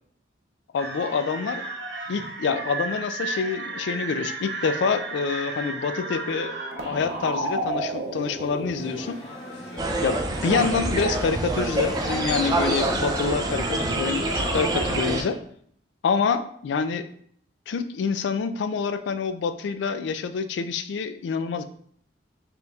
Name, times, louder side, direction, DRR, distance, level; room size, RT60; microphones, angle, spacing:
voice 1, 0.7-1.6 2.1-6.5 6.8-9.2 10.0-15.4 16.0-17.1 17.7-21.6, left 5 dB, 75° left, 10 dB, 0.3 m, -27 dB
sound 1, 0.8-9.1, right 2 dB, 60° right, 0.6 m, -32 dB
sound 2, 8.7-15.3, left 1 dB, 60° left, 1.3 m, -35 dB
sound 3, 9.8-15.2, right 2 dB, 20° right, 0.3 m, -26 dB
5.1 x 3.0 x 2.3 m, 0.64 s
head